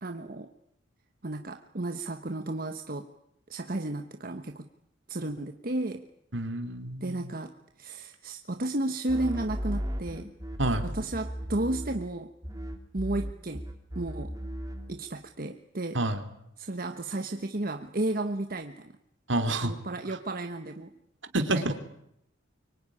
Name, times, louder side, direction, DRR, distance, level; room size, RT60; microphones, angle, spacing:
voice 1, 0.0-0.5 1.2-3.1 3.5-4.7 5.1-6.1 7.0-10.3 10.8-12.3 12.9-13.7 13.9-14.4 14.9-16.0 16.6-19.0 19.6-20.9 21.4-21.7, right 2 dB, 45° right, 7 dB, 1.2 m, -33 dB
voice 2, 6.3-7.3 10.6-10.8 15.9-16.2 19.3-19.7 21.3-21.6, right 2 dB, 65° right, 8 dB, 3.1 m, -28 dB
sound 1, 9.1-12.2 12.4-15.0, equal, 20° right, 3.0 m, -36 dB
24.5 x 23.5 x 9.9 m, 0.78 s
head